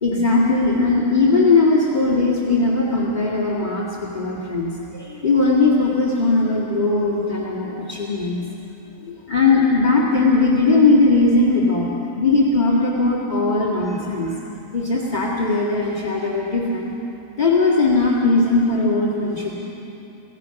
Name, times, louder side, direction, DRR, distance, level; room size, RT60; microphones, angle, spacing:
voice 1, 0.0-8.4 9.0-11.9 12.2-14.4 14.7-16.9 17.4-19.6, left 3 dB, 35° left, -5 dB, 2.2 m, -19 dB
27.0 x 16.5 x 5.9 m, 2.9 s
omnidirectional pair, 1.4 m